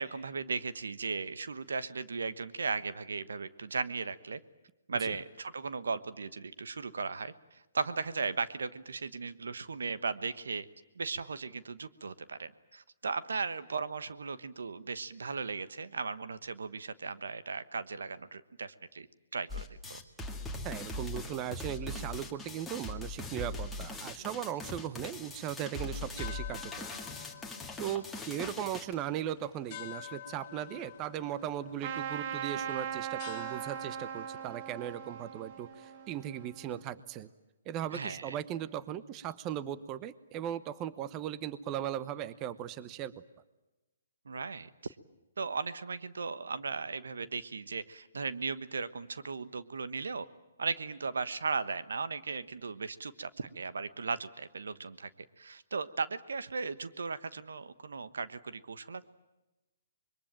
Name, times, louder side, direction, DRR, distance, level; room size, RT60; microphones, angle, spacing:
voice 1, 0.0-4.4 4.9-10.7 10.9-19.1 19.3-20.0 37.9-38.3 44.2-44.9 45.4-50.3 50.6-55.1 55.4-59.0, right 4 dB, 80° right, 14 dB, 1.2 m, -37 dB
sound 1, 19.5-28.9, left 2 dB, 5° left, 2.2 m, -40 dB
voice 2, 20.6-26.9 27.8-37.3 37.7-43.2, right 11 dB, 25° right, 17 dB, 0.9 m, -38 dB
sound 2, 25.6-36.5, left 12 dB, 35° left, 1.9 m, -50 dB
Trumpet, 31.8-36.9, right 9 dB, 40° right, 1.3 m, -39 dB
25.5 x 22.5 x 9.0 m, 1.0 s
hypercardioid pair, 145°, 0 cm